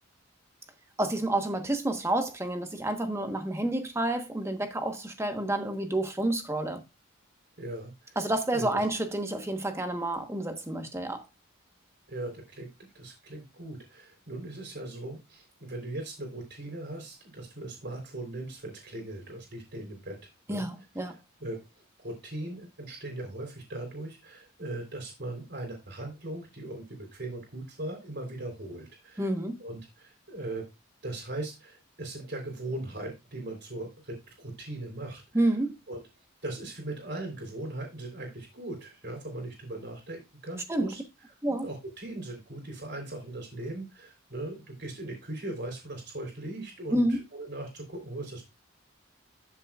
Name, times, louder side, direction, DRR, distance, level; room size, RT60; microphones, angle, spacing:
voice 1, 1.0-6.8 8.2-11.2 20.5-21.2 29.2-29.6 35.3-35.8 40.7-40.9 41.4-41.7 46.9-47.2, right 1 dB, 15° right, 1.2 m, -29 dB
voice 2, 7.6-8.2 8.5-8.8 12.1-12.7 12.9-20.2 20.5-20.7 21.0-29.3 29.6-30.7 31.0-35.5 35.9-36.0 36.4-41.0 41.5-48.4, right 2 dB, 55° right, 3.7 m, -39 dB
12.5 x 7.0 x 2.4 m
head